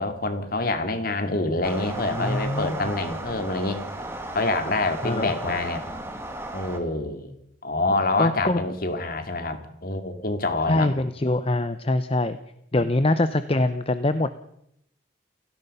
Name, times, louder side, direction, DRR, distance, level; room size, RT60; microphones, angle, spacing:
voice 1, 0.0-3.8 4.3-5.8 6.5-7.3 7.6-10.9 12.7-12.9, left 2 dB, 45° left, 8 dB, 2.4 m, -26 dB
sound 1, 1.6-6.8, right 1 dB, 15° right, 2.3 m, -35 dB
voice 2, 1.8-2.9 5.0-5.3 8.2-8.6 10.7-12.4 12.7-14.3, left 2 dB, 30° left, 12 dB, 0.7 m, -24 dB
29.0 x 16.5 x 5.5 m, 0.77 s
head